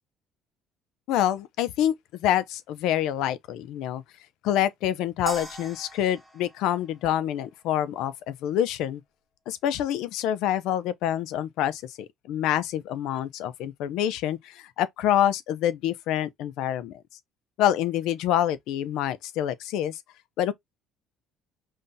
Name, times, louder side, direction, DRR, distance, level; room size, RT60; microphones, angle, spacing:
voice 1, 1.1-1.9 2.2-4.0 4.4-9.0 9.5-16.9 17.6-20.0 20.4-20.5, left 11 dB, 65° left, 0.6 m, -26 dB
sound 1, 5.3-7.6, equal, ahead, 1.2 m, -39 dB
5.5 x 3.3 x 2.7 m
cardioid pair, 175°, 0 cm